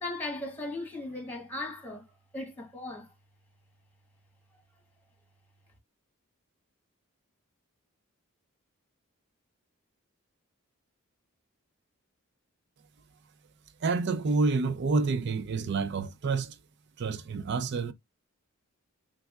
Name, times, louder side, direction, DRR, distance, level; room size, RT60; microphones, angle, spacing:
voice 1, 0.0-2.1 2.3-3.1, left 2 dB, 10° left, 1.1 m, -37 dB
voice 2, 13.8-16.6 17.0-17.9, right 4 dB, 55° right, 0.4 m, -28 dB
3.4 x 3.1 x 2.3 m
head